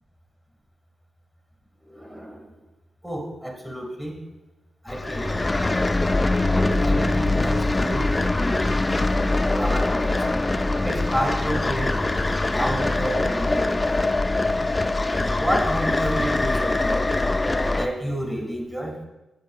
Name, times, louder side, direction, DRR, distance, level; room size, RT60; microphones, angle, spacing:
voice 1, 1.9-2.4 3.0-4.2 4.8-5.4 6.5-8.7 9.6-10.4 10.8-12.0 12.5-14.1 14.3-14.4 15.1-17.1 17.8-19.0, equal, 15° right, 2 dB, 1.7 m, -30 dB
sound 1, 4.9-17.9, left 2 dB, 25° left, 0.3 m, -23 dB
6.9 x 6.4 x 2.4 m, 1.0 s
cardioid pair, 55°, 0 cm